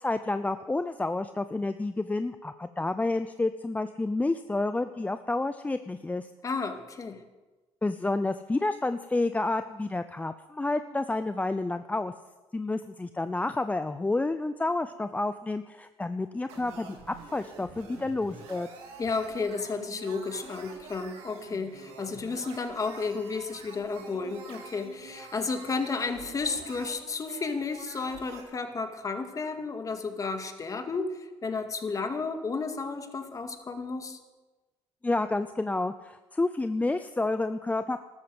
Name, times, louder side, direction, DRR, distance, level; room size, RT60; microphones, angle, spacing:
voice 1, 0.0-6.3 7.8-12.1 12.5-17.0 17.3-18.7 35.0-38.0, left 2 dB, 15° left, 10 dB, 0.6 m, -29 dB
voice 2, 6.4-7.2 19.0-34.2, left 4 dB, 35° left, 6 dB, 2.1 m, -32 dB
sound 1, 16.5-28.4, right 4 dB, 85° right, 3.1 m, -47 dB
13.0 x 13.0 x 7.9 m, 1.2 s
cardioid pair, 95°, 10 cm